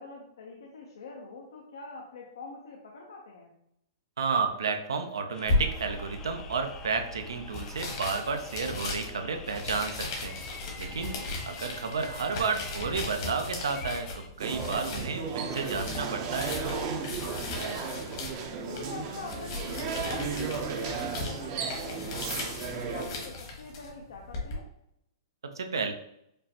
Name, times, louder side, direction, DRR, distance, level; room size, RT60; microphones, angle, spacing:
voice 1, 0.0-3.6 11.0-11.3 17.6-18.2 18.7-22.3 22.7-24.7, left 3 dB, 80° left, -1 dB, 0.6 m, -44 dB
voice 2, 4.2-10.4 10.8-11.2 11.5-14.1 14.4-16.6 25.6-25.9, right 5 dB, 90° right, 6 dB, 0.6 m, -31 dB
sound 1, 5.3-14.3, left 5 dB, 20° left, 0.4 m, -47 dB
sound 2, 5.5-24.6, left 2 dB, 55° left, 1.2 m, -37 dB
sound 3, 14.4-23.1, right 5 dB, 40° right, 0.6 m, -35 dB
5.0 x 2.1 x 2.8 m, 0.77 s
hypercardioid pair, 135°, 2 cm